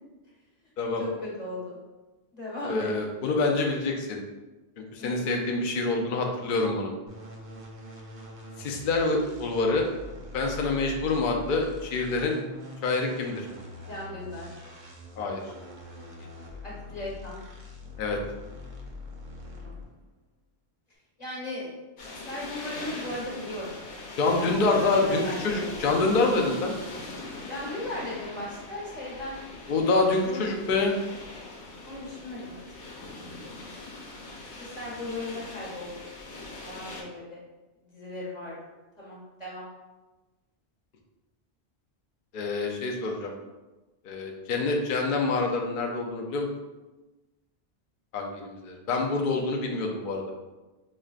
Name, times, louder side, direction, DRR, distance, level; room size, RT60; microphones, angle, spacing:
voice 1, 0.8-1.8 2.3-2.9 5.0-5.2 13.9-14.5 16.6-17.4 19.5-19.7 21.2-21.7 22.1-23.8 24.4-25.6 27.5-29.4 29.8-30.4 31.8-32.6 33.2-33.8 34.6-35.9 36.6-37.4 37.9-38.6 39.0-39.7, left 1 dB, 40° left, -6 dB, 1.2 m, -37 dB
voice 2, 2.6-4.2 4.9-6.9 8.6-9.9 10.3-12.4 12.8-13.4 15.2-15.4 18.0-18.2 24.2-26.7 29.7-31.0 42.3-43.3 44.0-46.5 48.1-50.2, left 3 dB, 60° left, 1 dB, 0.6 m, -26 dB
sound 1, 7.1-20.0, left 2 dB, 50° right, 0.6 m, -43 dB
sound 2, 22.0-37.0, left 2 dB, 90° left, 1.0 m, -41 dB
5.0 x 2.1 x 2.4 m, 1.1 s
omnidirectional pair, 1.1 m